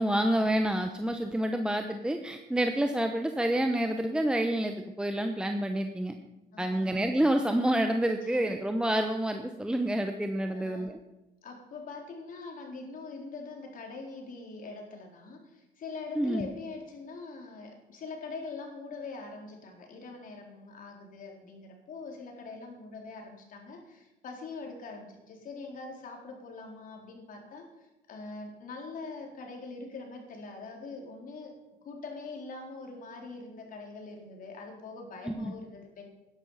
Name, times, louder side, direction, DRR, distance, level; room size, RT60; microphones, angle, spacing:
voice 1, 0.0-6.1 6.6-11.0 16.2-16.5 35.3-35.5, right 1 dB, 5° right, 5 dB, 0.9 m, -28 dB
voice 2, 6.5-7.1 8.2-8.6 10.5-10.9 11.4-31.6 31.8-36.1, left 3 dB, 55° left, 1 dB, 4.0 m, -43 dB
12.5 x 11.0 x 5.6 m, 1.0 s
cardioid pair, 110°, 17 cm